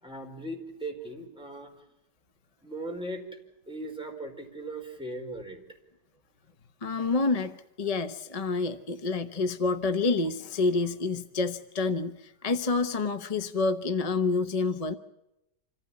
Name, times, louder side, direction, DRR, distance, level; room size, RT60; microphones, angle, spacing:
voice 1, 0.0-1.7 2.6-3.2 3.7-5.6, right 1 dB, 5° right, 1 dB, 4.6 m, -38 dB
voice 2, 6.8-7.5 7.8-15.0, left 3 dB, 30° left, 9 dB, 0.7 m, -28 dB
26.5 x 15.5 x 8.5 m, 0.88 s
omnidirectional pair, 1.8 m